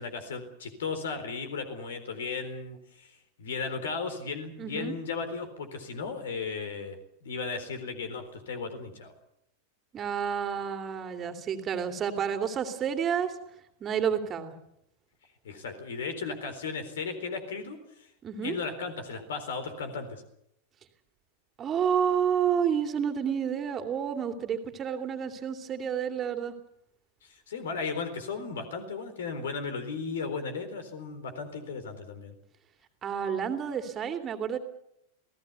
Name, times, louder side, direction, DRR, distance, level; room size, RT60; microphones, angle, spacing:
voice 1, 0.0-9.1 15.4-18.1 18.4-20.2 27.2-32.3, left 4 dB, 60° left, 9 dB, 3.9 m, -36 dB
voice 2, 4.6-5.0 9.9-13.3 13.8-14.5 18.2-18.6 21.6-26.5 33.0-34.6, right 8 dB, 25° right, 6 dB, 2.7 m, -30 dB
27.5 x 17.5 x 7.0 m, 0.77 s
figure-of-eight pair, 90°, 0 cm